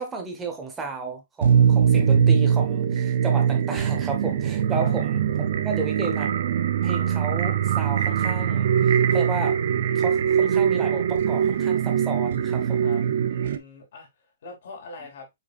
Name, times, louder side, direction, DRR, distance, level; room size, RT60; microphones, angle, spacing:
voice 1, 0.0-5.2 5.6-6.3 6.8-9.6 9.9-12.9, right 3 dB, 10° right, 1.2 m, -33 dB
sound 1, 1.4-13.6, right 8 dB, 60° right, 0.5 m, -22 dB
voice 2, 13.3-14.1 14.4-15.3, left 4 dB, 60° left, 2.8 m, -42 dB
5.2 x 4.1 x 2.4 m
hypercardioid pair, 155°, 0 cm